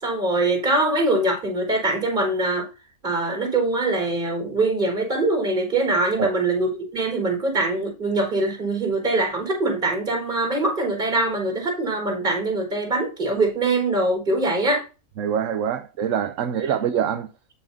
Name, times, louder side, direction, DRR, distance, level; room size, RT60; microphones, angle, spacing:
voice 1, 0.0-2.7 3.0-14.8, right 2 dB, 35° right, 4.5 m, -23 dB
voice 2, 15.2-17.3, right 8 dB, 65° right, 1.1 m, -24 dB
12.5 x 5.7 x 2.7 m
omnidirectional pair, 1.5 m